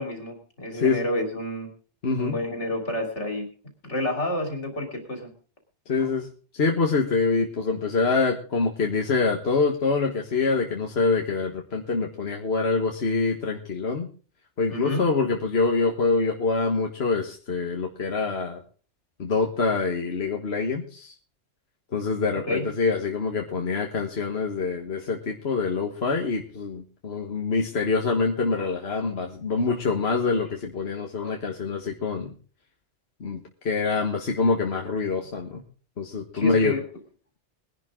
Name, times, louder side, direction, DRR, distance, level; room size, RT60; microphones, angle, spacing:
voice 1, 0.0-1.7 2.2-3.5 3.8-5.3 14.7-15.0 22.5-22.6 36.3-36.8, left 1 dB, 85° left, 3 dB, 3.6 m, -29 dB
voice 2, 2.0-2.4 5.9-6.3 6.5-14.1 14.6-18.6 19.2-21.1 21.9-32.3 33.2-33.4 33.6-35.6 36.0-36.7, left 4 dB, 65° left, 1 dB, 1.7 m, -25 dB
21.0 x 11.0 x 3.8 m, 0.39 s
omnidirectional pair, 1.2 m